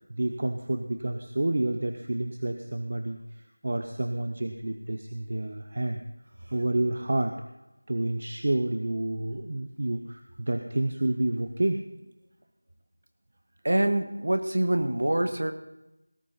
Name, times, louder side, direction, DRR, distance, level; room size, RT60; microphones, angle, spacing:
voice 1, 0.0-3.2 3.6-6.0 6.5-7.4 7.9-11.8, right 1 dB, 35° right, 6 dB, 0.7 m, -29 dB
voice 2, 13.6-15.5, right 1 dB, 50° right, 7 dB, 1.4 m, -25 dB
18.0 x 11.0 x 4.1 m, 0.96 s
figure-of-eight pair, 180°, 0 cm